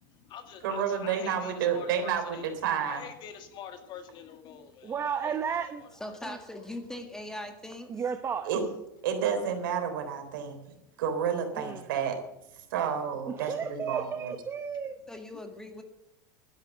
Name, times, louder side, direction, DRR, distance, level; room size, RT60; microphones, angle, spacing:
voice 1, 0.0-2.6 2.9-5.4 5.8-6.2, left 8 dB, 45° left, 8 dB, 1.9 m, -46 dB
voice 2, 0.6-3.1 8.5-8.6 9.0-10.6 11.0-12.2 12.7-14.3, right 7 dB, 75° right, 5 dB, 3.7 m, -30 dB
voice 3, 4.8-5.8 6.3-6.4 7.9-8.5 11.5-11.8 13.3-15.0, right 7 dB, 20° right, 9 dB, 0.8 m, -33 dB
voice 4, 5.9-8.0 15.1-15.8, left 1 dB, 5° left, 5 dB, 1.9 m, -40 dB
12.5 x 10.5 x 7.8 m, 0.84 s
supercardioid pair, 130°, 11 cm